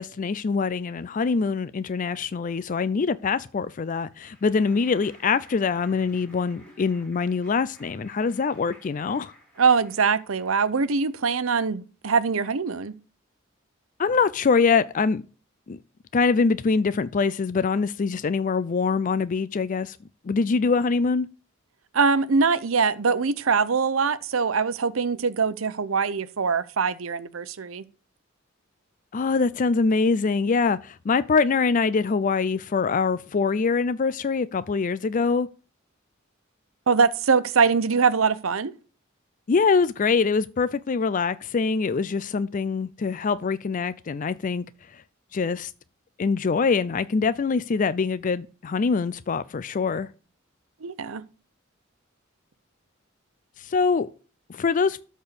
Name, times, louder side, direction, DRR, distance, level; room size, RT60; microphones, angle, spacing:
voice 1, 0.0-9.3 14.0-15.2 15.7-15.8 16.1-20.0 20.3-21.3 29.1-35.5 39.5-44.6 44.9-45.0 45.3-45.7 46.2-50.1 53.6-54.1 54.5-55.0, left 4 dB, 40° left, 0.4 m, -24 dB
Clapping, 3.6-10.7, equal, 5° left, 5.1 m, -54 dB
voice 2, 9.6-12.9 21.9-27.8 36.9-38.7 50.8-51.2, right 5 dB, 90° right, 0.7 m, -23 dB
13.0 x 4.4 x 6.8 m
head